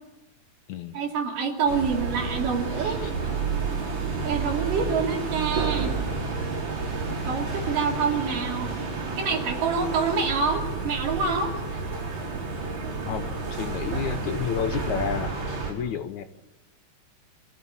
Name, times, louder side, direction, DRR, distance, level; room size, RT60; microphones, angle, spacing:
voice 1, 0.9-3.0 4.2-6.0 7.3-8.7 9.2-11.6, right 5 dB, 70° right, 2 dB, 4.3 m, -26 dB
sound 1, 1.7-15.7, right 4 dB, 55° right, 6.6 m, -30 dB
voice 2, 2.8-3.1 13.0-15.4 15.7-16.3, left 8 dB, 70° left, 10 dB, 2.0 m, -31 dB
26.0 x 15.0 x 8.7 m, 1.0 s
omnidirectional pair, 4.0 m